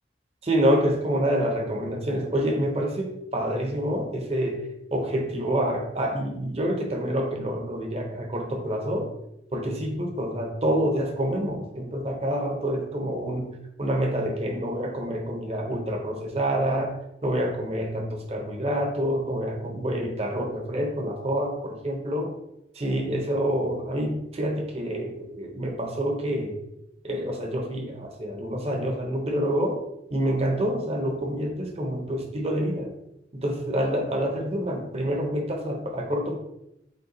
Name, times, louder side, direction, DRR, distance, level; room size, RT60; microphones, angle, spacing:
voice 1, 0.4-4.6 4.9-9.1 9.5-17.0 17.2-22.3 22.7-26.6 27.0-29.8 30.1-32.9 33.3-36.4, equal, 35° right, 2 dB, 0.7 m, -27 dB
5.3 x 2.3 x 3.9 m, 0.83 s
head